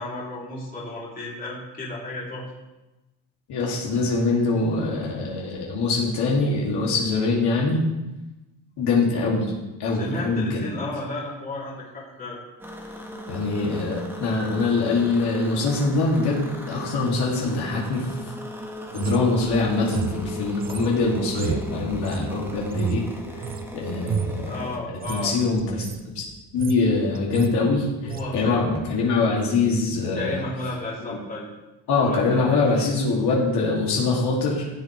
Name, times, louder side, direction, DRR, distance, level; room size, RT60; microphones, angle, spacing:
voice 1, 0.0-2.4 10.0-12.4 24.4-25.3 28.0-28.8 30.2-31.5 31.9-32.4 32.7-32.9, left 2 dB, 20° left, -6 dB, 3.2 m, -33 dB
voice 2, 3.5-7.8 8.8-9.5 9.8-10.6 13.3-18.1 18.9-23.0 23.7-24.6 24.9-25.8 26.1-26.2 26.5-30.4 31.1-31.2 31.9-34.7, left 3 dB, 60° left, -4 dB, 2.9 m, -23 dB
sound 1, 12.6-24.8, left 1 dB, 5° right, 1.3 m, -38 dB
sound 2, 18.9-23.7 24.0-24.4 24.9-25.2 25.6-26.0 26.3-26.9 27.1-27.5 28.1-28.3, right 6 dB, 20° right, 0.5 m, -31 dB
15.0 x 7.8 x 3.4 m, 1.0 s
cardioid pair, 130°, 45 cm